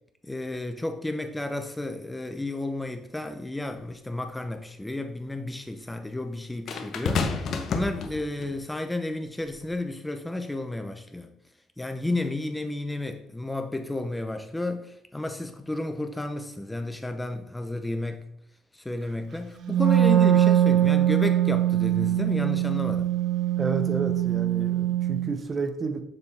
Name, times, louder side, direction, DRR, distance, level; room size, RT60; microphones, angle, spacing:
voice 1, 0.2-11.3 11.8-18.3 18.7-23.1, left 2 dB, 10° left, 6 dB, 0.6 m, -32 dB
sound 1, 3.8-3.9 6.7-8.6 9.5-9.7, left 5 dB, 60° left, 0.8 m, -30 dB
Wind instrument woodwind instrument, 19.6-25.3, right 12 dB, 60° right, 0.4 m, -22 dB
voice 2, 23.6-26.0, right 4 dB, 35° right, 7 dB, 0.8 m, -31 dB
6.7 x 3.7 x 4.2 m, 0.73 s
cardioid pair, 105°, 0 cm